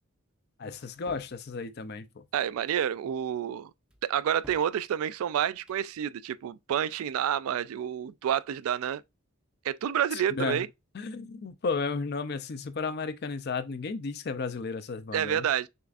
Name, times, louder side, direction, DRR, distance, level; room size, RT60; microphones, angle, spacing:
voice 1, 0.6-2.2 10.1-10.6 10.9-15.5, left 4 dB, 50° left, 0.5 m, -33 dB
sound 1, 0.8-1.4 2.5-2.9 3.9-4.8 5.5-5.9, equal, 5° right, 0.4 m, -54 dB
voice 2, 2.3-3.7 4.0-9.0 9.6-10.7 15.1-15.7, right 9 dB, 80° right, 0.3 m, -29 dB
6.5 x 2.5 x 2.4 m
head